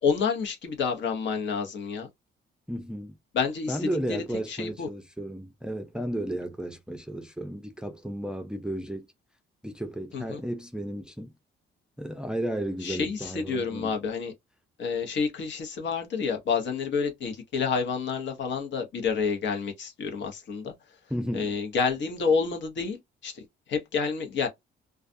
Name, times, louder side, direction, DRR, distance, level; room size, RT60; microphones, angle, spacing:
voice 1, 0.0-2.1 3.3-4.9 10.1-10.4 12.8-14.3 14.8-20.7 21.3-24.5, left 5 dB, 65° left, 1.0 m, -29 dB
voice 2, 2.7-3.1 3.7-9.1 9.6-11.3 12.0-14.0 21.1-21.5, right 1 dB, 5° right, 0.5 m, -33 dB
2.4 x 2.3 x 2.5 m
cardioid pair, 90°, 20 cm